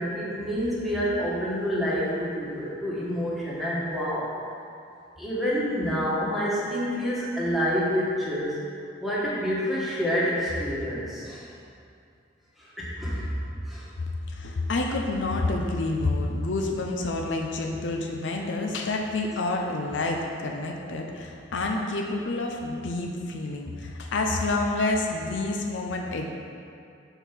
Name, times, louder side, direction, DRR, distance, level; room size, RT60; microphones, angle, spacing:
voice 1, 0.0-4.3 5.2-8.5 9.0-11.4 12.6-13.2 13.6-13.9, equal, ahead, -8 dB, 1.4 m, -28 dB
voice 2, 14.0-26.3, left 2 dB, 70° left, 1 dB, 0.6 m, -28 dB
5.2 x 4.5 x 5.9 m, 2.4 s
head